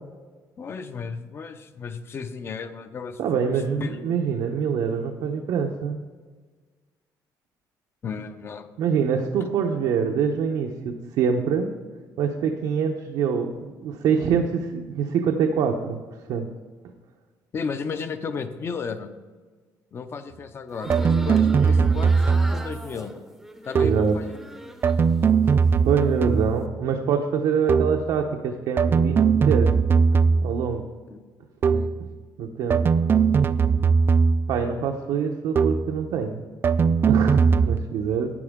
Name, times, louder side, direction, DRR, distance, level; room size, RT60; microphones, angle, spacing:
voice 1, 0.6-3.4 3.8-4.0 8.0-8.7 17.5-19.1 19.9-23.1 23.6-24.3 31.1-31.2 31.7-31.9, left 5 dB, 35° left, 10 dB, 0.7 m, -34 dB
voice 2, 3.2-6.0 8.8-11.7 12.2-16.0 16.3-16.5 23.8-24.2 25.8-29.7 30.4-30.8 32.4-32.8 34.5-36.4 37.1-38.3, right 6 dB, 75° right, 2 dB, 0.8 m, -25 dB
sound 1, 20.7-25.1 25.5-26.2, equal, ahead, 0.7 m, -40 dB
sound 2, 20.9-22.7 23.7-24.2 24.8-26.7 27.7-28.1 28.8-30.7 31.6-32.0 32.7-34.6 35.6-36.0 36.6-37.8, right 5 dB, 30° right, 0.3 m, -20 dB
12.0 x 8.8 x 3.7 m, 1.4 s
cardioid pair, 160°, 7 cm